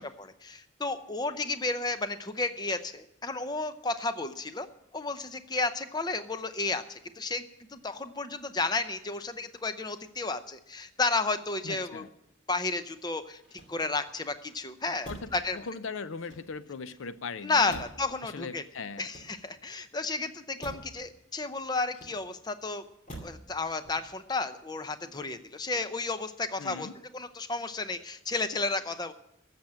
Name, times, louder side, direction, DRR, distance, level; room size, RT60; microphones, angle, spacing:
voice 1, 0.0-4.7 4.9-7.4 7.7-12.1 12.5-13.4 13.7-15.6 17.4-18.6 19.0-22.8 23.2-29.1, left 3 dB, 20° left, 10 dB, 0.6 m, -32 dB
voice 2, 11.6-12.1 15.1-17.8 18.2-19.1 26.6-27.0, left 4 dB, 80° left, 14 dB, 0.6 m, -39 dB
Motor vehicle (road), 13.4-14.2 15.0-15.5 16.1-16.8 17.7-18.1 18.9-19.7 20.6-21.0 21.9-22.5 23.1-23.5 23.8-24.3, right 1 dB, 35° left, 2.5 m, -47 dB
13.0 x 7.6 x 8.7 m, 0.81 s
head